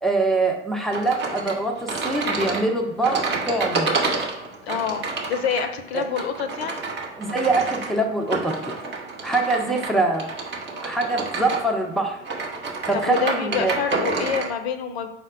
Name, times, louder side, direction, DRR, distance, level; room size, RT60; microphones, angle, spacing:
voice 1, 0.0-3.9 5.9-6.0 7.2-8.8 9.2-10.3 10.8-12.2 12.9-13.8, right 2 dB, ahead, 1 dB, 0.4 m, -24 dB
sound 1, 0.9-14.5, right 3 dB, 30° right, 0.9 m, -29 dB
voice 2, 4.6-6.8 12.9-15.1, left 7 dB, 65° left, 8 dB, 0.5 m, -27 dB
5.0 x 2.1 x 4.6 m, 0.85 s
figure-of-eight pair, 70°, 34 cm